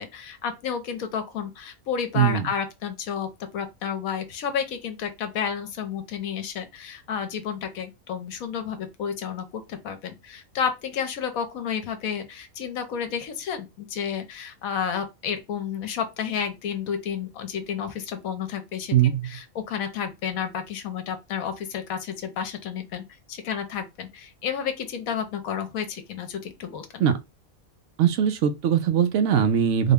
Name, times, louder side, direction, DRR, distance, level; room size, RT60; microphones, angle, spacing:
voice 1, 0.0-19.0 19.2-27.0, left 7 dB, 75° left, 1.1 m, -31 dB
voice 2, 2.1-2.5 18.9-19.3 27.0-27.2 28.0-29.9, right 9 dB, 65° right, 0.8 m, -21 dB
3.8 x 2.2 x 3.5 m
omnidirectional pair, 1.5 m